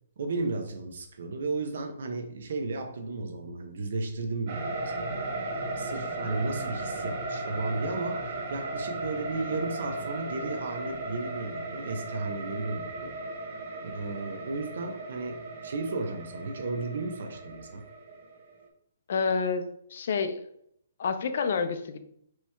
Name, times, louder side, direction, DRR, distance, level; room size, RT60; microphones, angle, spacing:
voice 1, 0.2-4.9 5.8-13.2 13.8-17.8, right 3 dB, 65° right, 4 dB, 0.8 m, -34 dB
sound 1, 4.5-18.6, right 2 dB, 40° right, 1.0 m, -36 dB
voice 2, 19.1-19.6 19.9-20.4 21.0-22.0, left 5 dB, 55° left, 8 dB, 0.6 m, -28 dB
4.6 x 3.0 x 3.5 m, 0.70 s
hypercardioid pair, 160°, 0 cm